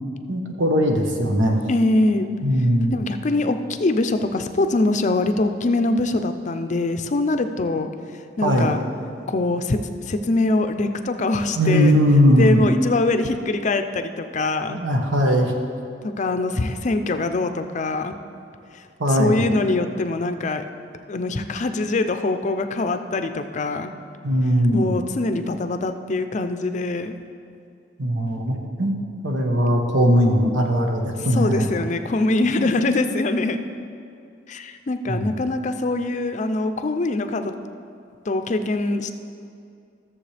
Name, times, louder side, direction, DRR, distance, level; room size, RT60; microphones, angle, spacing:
voice 1, 0.3-1.6 2.4-3.0 8.4-8.8 11.6-12.6 14.7-15.5 19.0-19.4 24.2-24.9 28.0-28.9 29.2-31.7 35.1-35.3, equal, 90° right, 2 dB, 1.2 m, -19 dB
voice 2, 1.7-2.3 2.9-7.9 8.4-8.8 9.3-9.8 10.1-12.0 12.3-14.8 16.0-18.2 19.1-20.6 21.1-23.9 24.7-27.2 31.3-33.6 34.5-37.5 38.3-39.1, left 2 dB, 40° left, 8 dB, 0.5 m, -23 dB
14.5 x 7.1 x 3.4 m, 2.4 s
head